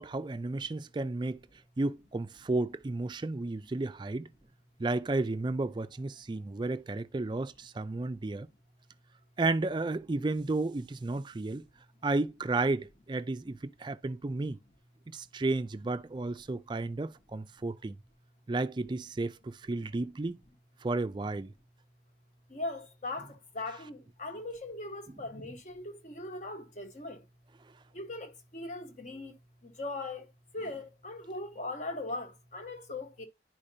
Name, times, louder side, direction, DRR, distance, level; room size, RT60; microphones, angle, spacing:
voice 1, 0.0-1.4 1.8-4.3 4.8-8.5 9.4-11.6 12.0-14.6 15.1-18.0 18.5-20.4 20.8-21.5, right 2 dB, 25° right, 0.3 m, -32 dB
voice 2, 22.5-27.2 27.9-29.4 29.6-30.3 30.5-33.3, left 2 dB, 40° left, 1.3 m, -40 dB
10.5 x 5.0 x 2.8 m
head